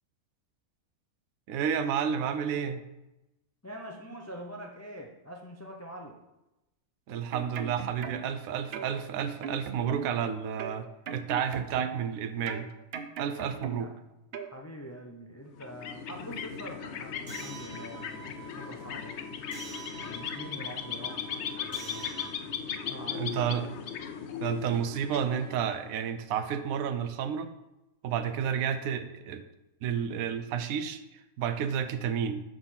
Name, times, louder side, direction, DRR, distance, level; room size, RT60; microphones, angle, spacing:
voice 1, 1.5-2.8 7.1-10.9 11.1-12.7 13.2-13.9 22.7-22.8 23.1-23.7 24.4-27.5 28.0-29.4 29.8-31.0 31.4-32.4, right 8 dB, 80° right, 9 dB, 1.0 m, -31 dB
voice 2, 3.6-6.2 13.4-13.9 14.4-19.2 20.0-23.7, equal, 20° left, 1 dB, 0.4 m, -45 dB
sound 1, 7.1-8.4 8.7-10.2 10.6-12.1 12.5-14.0 14.3-14.5, right 6 dB, 60° right, 0.7 m, -39 dB
sound 2, 15.5-25.9, left 7 dB, 65° left, 0.8 m, -38 dB
sound 3, 17.3-22.3, right 5 dB, 35° right, 1.0 m, -47 dB
6.3 x 5.1 x 5.7 m, 0.95 s
omnidirectional pair, 1.5 m